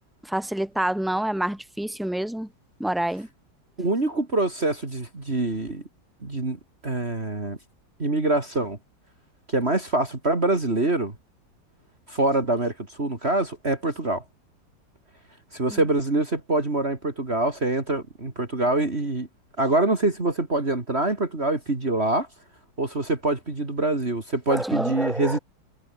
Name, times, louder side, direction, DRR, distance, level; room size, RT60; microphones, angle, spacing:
voice 1, 0.2-2.5 2.8-3.3 15.7-15.8 24.5-25.4, right 1 dB, ahead, 4.2 m, -27 dB
voice 2, 3.8-5.8 6.2-7.6 8.0-8.8 9.5-11.2 12.1-14.2 15.5-19.3 19.6-22.3 22.8-25.4, right 2 dB, 35° right, 3.4 m, -25 dB
omnidirectional pair, 1.9 m